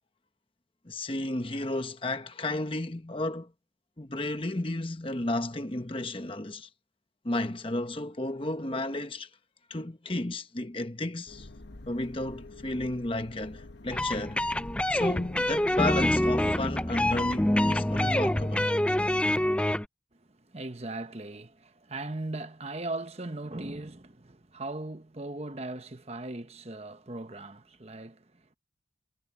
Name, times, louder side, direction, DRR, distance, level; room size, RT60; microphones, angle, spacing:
voice 1, 0.8-3.5 4.0-6.7 7.2-9.3 9.7-11.5 11.9-14.4 14.9-18.7, left 2 dB, 30° left, 1.1 m, -33 dB
sound 1, 11.3-18.7, left 2 dB, 70° left, 1.1 m, -47 dB
sound 2, 13.9-19.9, left 1 dB, 5° left, 0.4 m, -26 dB
voice 2, 20.1-28.6, right 2 dB, 35° right, 1.1 m, -39 dB
head